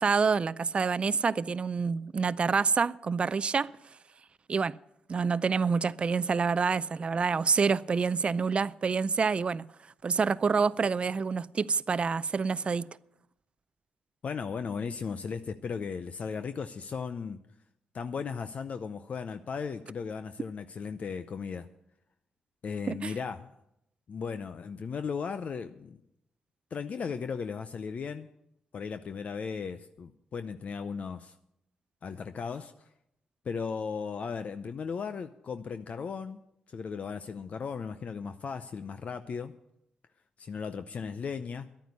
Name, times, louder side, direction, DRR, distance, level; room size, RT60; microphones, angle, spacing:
voice 1, 0.0-3.7 4.5-4.7 5.1-9.7 10.0-12.9 22.9-23.1, right 5 dB, 45° right, 0.4 m, -27 dB
voice 2, 14.2-17.4 17.9-21.7 22.6-23.5 24.1-26.0 26.7-28.3 28.7-31.3 32.0-32.9 33.4-36.4 36.7-39.5 40.4-41.7, left 5 dB, 55° left, 0.6 m, -36 dB
11.5 x 9.1 x 8.3 m
cardioid pair, 60°, 3 cm